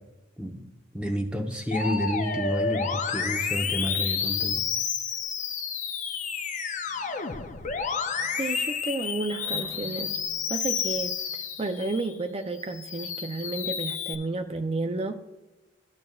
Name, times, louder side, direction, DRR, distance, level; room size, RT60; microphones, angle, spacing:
voice 1, 0.9-4.6, equal, 5° right, 0 dB, 0.8 m, -30 dB
Musical instrument, 1.7-12.1 12.6-14.1, left 6 dB, 35° left, 0.5 m, -30 dB
sound 1, 6.9-12.3, left 1 dB, 70° left, 1.2 m, -50 dB
voice 2, 8.4-10.2 10.5-15.2, right 2 dB, 30° right, 7 dB, 0.4 m, -31 dB
13.0 x 6.8 x 2.3 m, 1.1 s
head